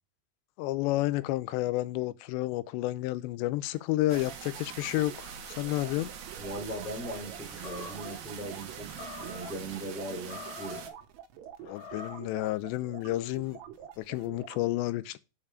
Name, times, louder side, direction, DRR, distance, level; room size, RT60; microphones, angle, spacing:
voice 1, 0.6-6.1 11.6-13.6 14.0-15.2, left 17 dB, 85° left, 2.8 m, -31 dB
sound 1, 3.7-14.6, right 10 dB, 85° right, 3.2 m, -48 dB
sound 2, 4.1-10.9, right 8 dB, 70° right, 1.8 m, -44 dB
voice 2, 6.4-10.8, right 1 dB, 5° right, 2.1 m, -39 dB
Animal, 7.5-8.2 8.9-9.5 10.2-10.9 11.6-12.3, left 4 dB, 45° left, 2.1 m, -44 dB
7.1 x 5.5 x 4.8 m
omnidirectional pair, 5.0 m